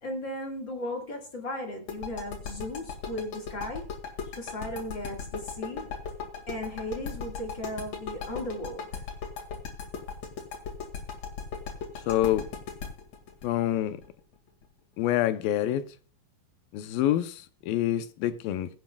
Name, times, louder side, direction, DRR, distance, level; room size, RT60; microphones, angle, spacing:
voice 1, 0.0-4.0 4.3-5.9 6.5-9.0, left 1 dB, 35° left, 2.3 m, -36 dB
sound 1, 1.9-14.6, left 6 dB, 50° left, 3.2 m, -37 dB
voice 2, 12.1-12.5 13.4-14.0 15.0-15.8 16.7-18.7, left 12 dB, 90° left, 2.5 m, -26 dB
22.0 x 7.8 x 2.4 m
omnidirectional pair, 4.1 m